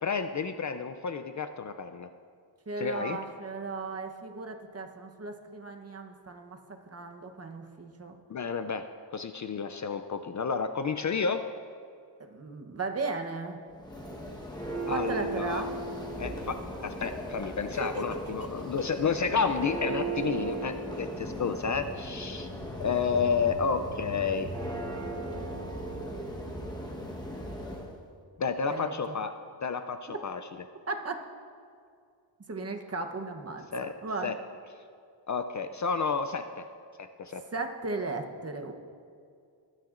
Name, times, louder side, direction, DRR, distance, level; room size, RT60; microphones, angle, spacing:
voice 1, 0.0-2.1 2.8-3.2 8.3-8.8 9.1-11.4 14.9-15.6 16.2-22.5 22.8-24.5 28.4-29.3 29.6-30.4 33.7-33.9 34.2-34.3 35.3-36.6 37.2-37.4, left 5 dB, 40° left, 9 dB, 0.4 m, -31 dB
voice 2, 2.7-6.6 6.9-8.1 12.2-13.6 14.9-15.7 17.7-18.6 28.7-29.1 30.9-31.2 32.5-34.4 37.5-38.7, right 3 dB, 30° right, 5 dB, 0.9 m, -36 dB
Church bell, 13.7-28.0, right 1 dB, 10° left, 1.1 m, -37 dB
22.0 x 9.0 x 2.5 m, 2.3 s
wide cardioid pair, 110°, 46 cm